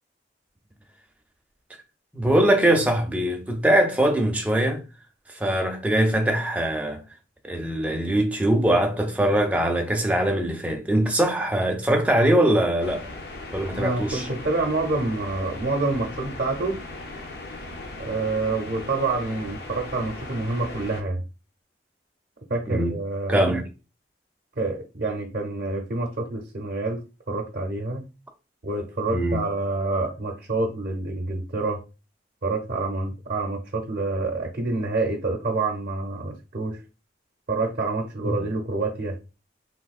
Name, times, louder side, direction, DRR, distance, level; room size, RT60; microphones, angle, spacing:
voice 1, 2.1-4.8 5.3-7.0 7.4-13.1 13.5-14.3 22.7-22.9 23.3-23.6 29.1-29.5 38.2-38.5, right 1 dB, 10° right, 0.4 m, -22 dB
sound 1, 12.8-21.0, left 2 dB, 60° left, 0.6 m, -38 dB
voice 2, 13.8-16.8 18.0-21.2 22.5-23.4 24.6-28.0 28.6-31.8 32.4-36.8 37.5-39.2, right 3 dB, 55° right, 0.6 m, -27 dB
3.5 x 2.6 x 2.3 m
head